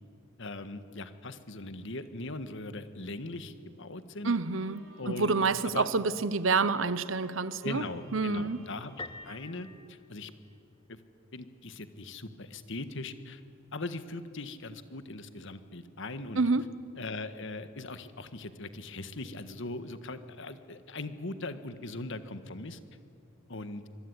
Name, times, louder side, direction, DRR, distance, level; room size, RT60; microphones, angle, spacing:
voice 1, 0.4-4.3 5.0-5.4 5.7-5.9 7.6-9.0 9.2-10.3 10.9-11.0 11.3-13.4 13.7-16.4 17.0-22.8 23.5-23.8, left 2 dB, 65° left, 11 dB, 1.7 m, -40 dB
voice 2, 4.2-7.8 8.1-8.6 16.4-16.6, right 4 dB, 70° right, 15 dB, 0.9 m, -28 dB
Bowed string instrument, 4.4-10.6, right 2 dB, 90° right, 4.3 m, -57 dB
Piano, 9.0-10.8, left 2 dB, 25° left, 0.8 m, -46 dB
25.0 x 23.5 x 9.7 m, 2.4 s
head